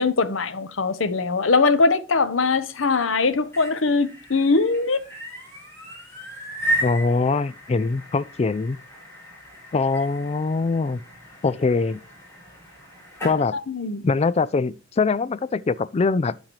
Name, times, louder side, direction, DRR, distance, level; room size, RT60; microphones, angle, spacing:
voice 1, 0.0-5.0 13.5-14.0, left 4 dB, 80° left, 0.9 m, -21 dB
sound 1, 3.3-13.4, right 1 dB, 15° left, 5.3 m, -34 dB
voice 2, 6.8-8.8 9.7-11.0 11.4-12.0 13.2-13.6 14.0-16.4, left 4 dB, 35° left, 0.4 m, -23 dB
8.8 x 7.3 x 3.0 m
head